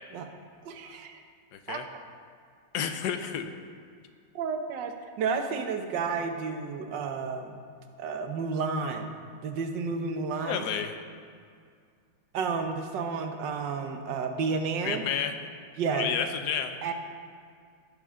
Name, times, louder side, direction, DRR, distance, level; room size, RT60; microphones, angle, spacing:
voice 1, 0.6-1.2 1.7-1.8 4.3-7.6 8.0-9.1 9.4-10.7 12.3-15.0 15.8-16.1 16.8-16.9, right 5 dB, 90° right, 5 dB, 1.5 m, -31 dB
voice 2, 1.5-1.9 2.7-3.5 10.4-10.9 14.8-15.3 15.9-16.7, left 7 dB, 70° left, 7 dB, 1.2 m, -30 dB
17.0 x 6.5 x 3.7 m, 2.2 s
omnidirectional pair, 1.9 m